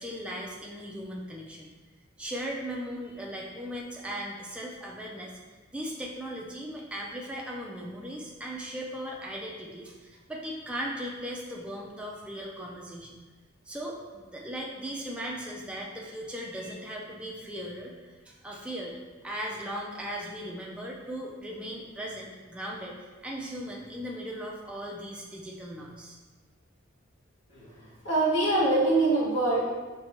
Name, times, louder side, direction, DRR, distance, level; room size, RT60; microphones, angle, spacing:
voice 1, 0.0-1.7 2.2-5.3 5.7-13.2 13.7-19.0 19.2-26.2, equal, 5° right, -3 dB, 0.4 m, -38 dB
voice 2, 28.0-29.6, right 2 dB, 60° left, -6 dB, 1.2 m, -23 dB
5.6 x 2.2 x 2.9 m, 1.3 s
head